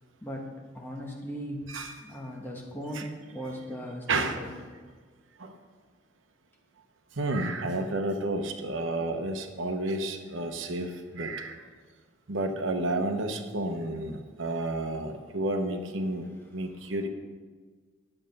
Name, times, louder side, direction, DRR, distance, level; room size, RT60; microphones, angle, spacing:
voice 1, 0.7-1.7 2.0-4.5, equal, 10° left, -2 dB, 1.3 m, -38 dB
voice 2, 1.7-2.1 2.9-3.1 4.1-4.4 5.4-5.6 7.2-11.6 12.3-17.1, right 2 dB, 80° right, 6 dB, 0.9 m, -31 dB
9.9 x 7.9 x 5.3 m, 1.5 s
head